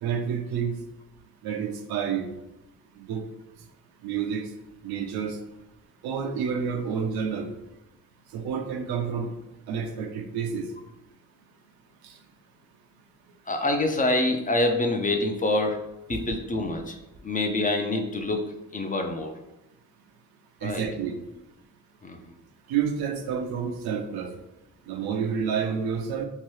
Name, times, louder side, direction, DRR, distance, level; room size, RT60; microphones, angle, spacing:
voice 1, 0.0-0.7 1.4-2.3 3.0-3.2 4.0-4.5 4.8-5.4 6.0-7.5 8.3-9.3 9.7-10.7 12.0-12.1 16.1-16.2 20.6-21.1 22.7-24.3 24.9-26.2, right 7 dB, 85° right, 5 dB, 0.5 m, -29 dB
voice 2, 13.5-15.8 16.1-17.0 17.2-19.3 20.6-20.8 22.0-22.2, left 2 dB, 25° left, 5 dB, 0.4 m, -26 dB
2.8 x 2.3 x 3.1 m, 0.93 s
cardioid pair, 70°, 36 cm